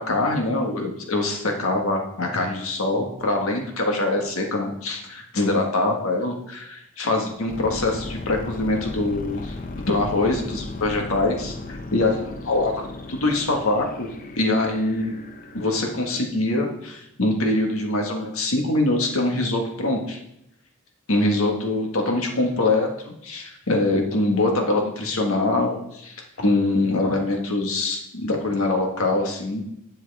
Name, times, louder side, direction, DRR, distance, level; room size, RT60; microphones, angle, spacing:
voice 1, 0.0-12.7 13.1-14.1 14.3-15.1 15.5-20.2 21.1-29.6, left 2 dB, 75° left, 2 dB, 1.7 m, -24 dB
sound 1, 7.5-16.1, left 2 dB, 40° left, 0.9 m, -36 dB
12.0 x 7.8 x 3.5 m, 0.79 s
head